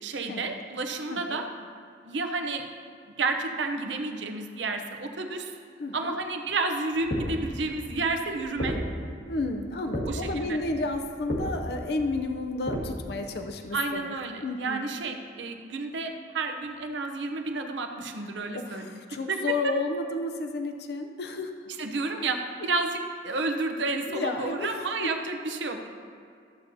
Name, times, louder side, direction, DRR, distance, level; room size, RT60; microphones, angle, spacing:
voice 1, 0.0-1.4 2.0-2.6 3.2-5.5 5.9-8.8 10.1-10.6 13.7-18.8 19.3-19.4 19.6-19.7 21.8-23.0 23.2-25.9, right 3 dB, 80° right, 4 dB, 0.8 m, -31 dB
voice 2, 1.1-1.4 5.8-6.2 9.3-14.2 14.4-14.9 18.5-21.5 24.1-24.7 25.0-25.1, left 2 dB, 60° left, 5 dB, 0.5 m, -32 dB
sound 1, 6.9-12.9, equal, 80° left, 1.7 m, -35 dB
13.5 x 8.2 x 2.7 m, 2.4 s
head